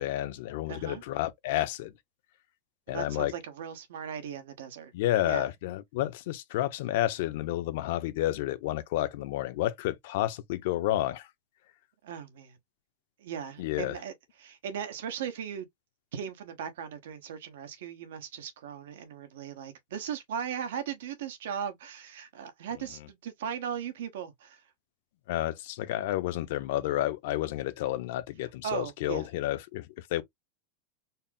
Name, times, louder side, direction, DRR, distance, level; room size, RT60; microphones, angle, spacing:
voice 1, 0.0-2.0 2.9-3.3 4.9-11.3 13.6-14.0 25.3-30.2, left 14 dB, 55° left, 0.6 m, -30 dB
voice 2, 0.7-1.0 2.9-4.9 5.3-5.5 12.0-12.6 13.2-14.1 14.4-15.7 16.1-24.6 28.6-29.3, right 8 dB, 90° right, 1.1 m, -38 dB
4.2 x 2.0 x 3.6 m
supercardioid pair, 175°, 0 cm